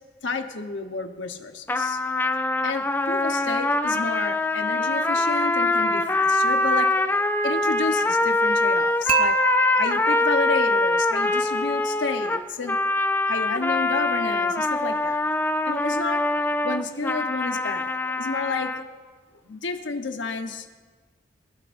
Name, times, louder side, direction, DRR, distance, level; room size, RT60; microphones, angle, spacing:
voice 1, 0.2-2.0 2.6-6.9 7.4-9.4 9.7-12.8 13.3-15.3 15.6-16.2 16.6-18.7 19.4-20.8, left 4 dB, 75° left, 6 dB, 1.0 m, -31 dB
sound 1, 1.7-18.8, left 2 dB, 10° left, 0.4 m, -23 dB
Dishes pots and pans / Chink clink, 9.1-11.2, right 5 dB, 30° right, 0.7 m, -27 dB
25.5 x 12.0 x 2.6 m, 1.5 s
head